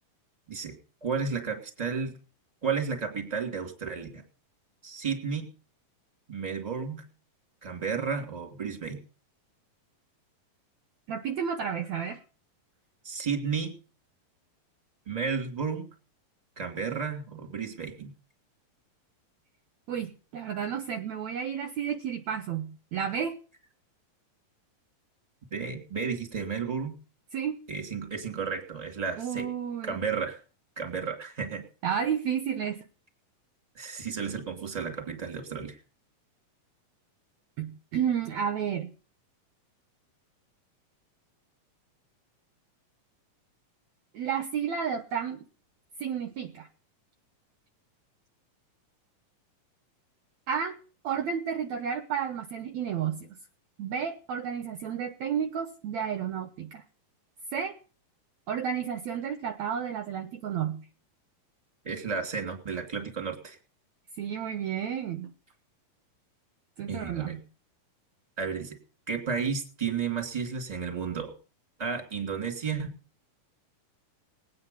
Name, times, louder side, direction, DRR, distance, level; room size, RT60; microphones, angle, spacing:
voice 1, 0.5-2.2 2.6-4.2 4.8-5.5 6.3-7.0 7.6-9.0 13.0-13.7 15.1-15.8 16.6-18.1 25.5-27.0 27.7-29.5 29.8-30.4 30.8-31.6 33.7-35.8 61.8-63.6 66.9-67.4 68.4-68.8 69.1-71.3 71.8-72.9, right 5 dB, 10° right, 3 dB, 2.5 m, -32 dB
voice 2, 11.1-12.2 19.9-23.3 27.3-27.6 29.2-30.0 31.8-32.8 37.6-38.9 44.1-45.5 46.0-46.7 50.5-50.8 51.0-53.4 53.8-56.8 57.5-57.7 58.5-60.9 64.2-65.3 66.8-67.4, right 8 dB, 70° right, 8 dB, 1.9 m, -31 dB
20.5 x 9.5 x 5.5 m, 0.39 s
omnidirectional pair, 4.0 m